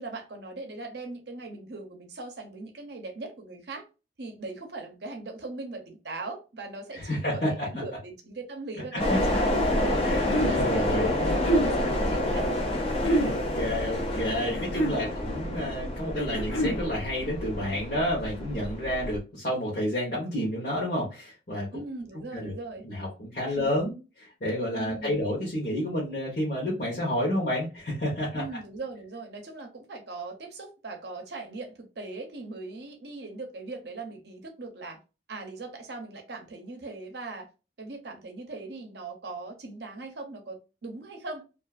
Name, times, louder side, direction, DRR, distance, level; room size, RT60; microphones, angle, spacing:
voice 1, 0.0-3.9 4.2-10.1 10.4-12.5 14.5-14.7 15.0-15.1 21.7-22.8 23.5-23.8 24.7-25.2 28.3-35.0 35.3-37.5 37.8-41.4, right 3 dB, 65° right, 0.6 m, -40 dB
voice 2, 6.9-7.5 8.9-9.4 10.0-11.4 13.2-21.7 22.3-22.5 22.8-28.4, equal, 50° left, 0.9 m, -30 dB
sound 1, 9.0-19.2, left 1 dB, 30° left, 0.5 m, -28 dB
sound 2, 9.8-10.6 11.3-11.7 12.9-13.4 14.4-15.0 16.2-16.8, right 1 dB, 80° left, 0.8 m, -27 dB
2.4 x 2.4 x 2.3 m
head